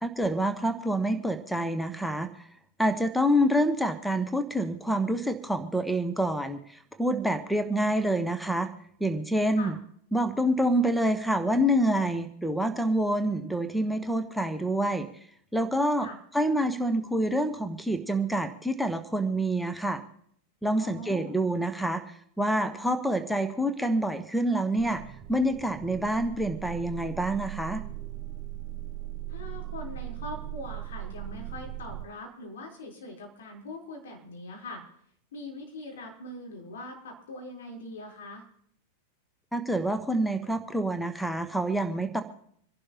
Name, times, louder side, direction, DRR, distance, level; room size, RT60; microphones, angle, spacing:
voice 1, 0.0-2.5 2.8-8.7 9.0-9.8 10.1-15.1 15.5-16.1 16.3-20.0 20.6-25.0 25.3-27.8 39.5-42.2, right 1 dB, ahead, 9 dB, 1.0 m, -27 dB
voice 2, 20.8-21.4 29.3-34.8 35.3-38.5, left 2 dB, 60° left, 0 dB, 3.9 m, -42 dB
sound 1, 24.8-32.1, right 14 dB, 40° right, 0.9 m, -39 dB
27.0 x 11.5 x 2.9 m, 0.66 s
figure-of-eight pair, 90°, 0 cm